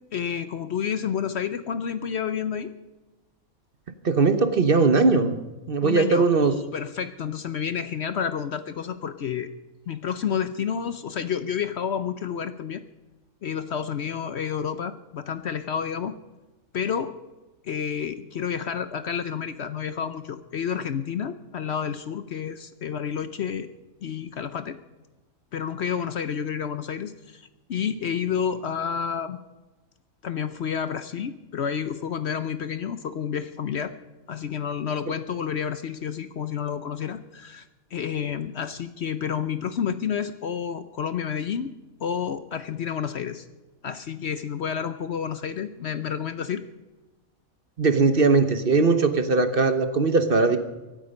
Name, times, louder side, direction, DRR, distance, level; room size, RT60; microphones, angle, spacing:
voice 1, 0.1-2.7 5.8-9.5 9.9-12.8 13.4-16.1 16.7-17.2 17.6-23.7 24.0-24.8 25.5-29.4 30.2-33.9 34.3-41.7 42.0-43.5 43.8-46.6, left 7 dB, 55° left, 12 dB, 0.9 m, -30 dB
voice 2, 4.0-5.3 5.7-6.5 47.8-50.6, right 4 dB, 45° right, 9 dB, 1.1 m, -20 dB
24.0 x 8.9 x 5.2 m, 1.1 s
omnidirectional pair, 1.5 m